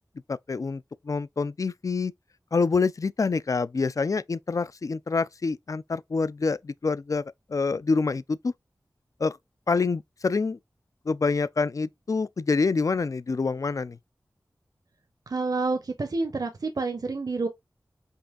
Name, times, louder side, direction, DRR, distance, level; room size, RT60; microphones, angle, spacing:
voice 1, 0.5-2.1 2.5-7.2 7.5-8.5 9.2-9.4 9.7-10.6 11.1-14.0, left 4 dB, 50° left, 0.3 m, -26 dB
voice 2, 15.3-17.5, right 3 dB, 65° right, 0.7 m, -28 dB
5.3 x 2.6 x 2.4 m
cardioid pair, 45°, 7 cm